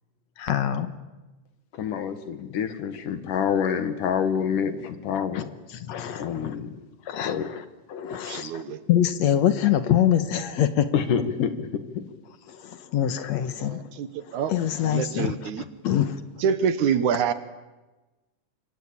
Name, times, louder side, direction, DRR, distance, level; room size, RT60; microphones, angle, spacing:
voice 1, 0.4-0.9 5.2-5.4 5.7-6.6 7.1-7.6 7.9-10.9 12.5-13.9 14.3-16.2, left 10 dB, 65° left, 11 dB, 2.3 m, -25 dB
voice 2, 1.7-5.5 6.2-6.8 7.2-7.5 10.9-11.5 11.9-12.0, left 7 dB, 80° left, 10 dB, 3.3 m, -27 dB
voice 3, 8.3-8.8 13.6-14.1 14.3-14.5 14.9-15.6 16.4-17.3, right 7 dB, 70° right, 12 dB, 2.6 m, -26 dB
27.0 x 23.5 x 8.8 m, 1.1 s
omnidirectional pair, 3.6 m